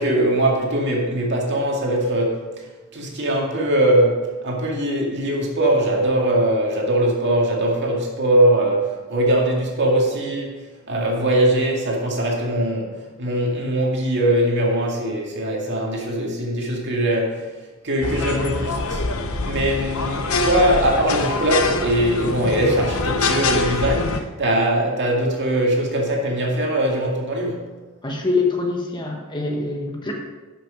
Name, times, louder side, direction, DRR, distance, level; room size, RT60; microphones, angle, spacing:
voice 1, 0.0-2.6 2.9-17.5 17.8-19.0 19.4-27.7, right 1 dB, 55° right, -1 dB, 2.1 m, -21 dB
sound 1, 18.0-24.2, left 3 dB, 70° left, 0.9 m, -24 dB
voice 2, 28.0-30.1, left 3 dB, 20° left, 1 dB, 1.3 m, -24 dB
11.0 x 6.3 x 5.0 m, 1.2 s
head